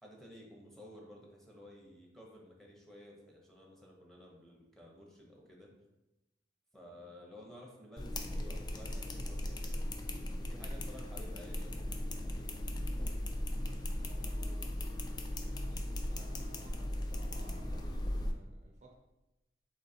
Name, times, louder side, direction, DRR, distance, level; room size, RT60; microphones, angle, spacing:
voice 1, 0.0-5.7 6.7-9.8 10.4-11.8, left 1 dB, ahead, -3 dB, 0.8 m, -54 dB
sound 1, 8.0-18.3, left 1 dB, 25° left, 0.3 m, -37 dB
voice 2, 13.9-14.8 15.4-18.9, right 1 dB, 40° right, 1 dB, 0.5 m, -58 dB
3.8 x 3.0 x 4.2 m, 0.97 s
head